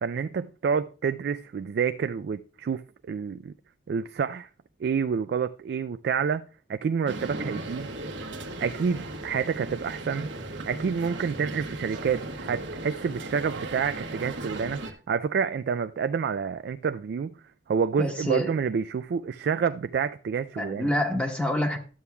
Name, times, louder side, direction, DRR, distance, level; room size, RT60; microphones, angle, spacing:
voice 1, 0.0-3.5 3.9-4.5 4.8-7.9 8.6-10.3 10.7-17.3 17.7-20.9, right 6 dB, 60° right, 0.3 m, -28 dB
sound 1, 7.1-14.9, right 2 dB, 85° right, 1.1 m, -37 dB
voice 2, 18.0-18.5 20.6-21.8, left 1 dB, 5° left, 1.0 m, -27 dB
12.5 x 8.3 x 2.3 m
head